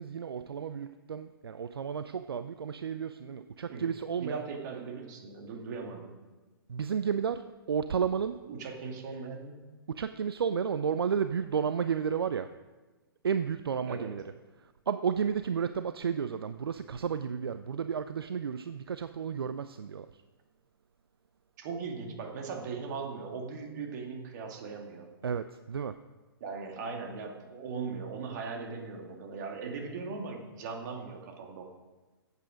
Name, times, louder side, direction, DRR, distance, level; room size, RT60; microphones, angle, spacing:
voice 1, 0.0-4.4 6.7-8.4 9.9-12.5 13.2-14.2 14.6-20.2 25.2-26.0, right 7 dB, 70° right, 11 dB, 0.5 m, -32 dB
voice 2, 4.2-6.1 8.4-9.6 13.9-14.1 21.6-25.1 26.4-31.6, right 5 dB, 45° right, 2 dB, 2.2 m, -39 dB
14.5 x 8.3 x 5.1 m, 1.2 s
figure-of-eight pair, 125°, 13 cm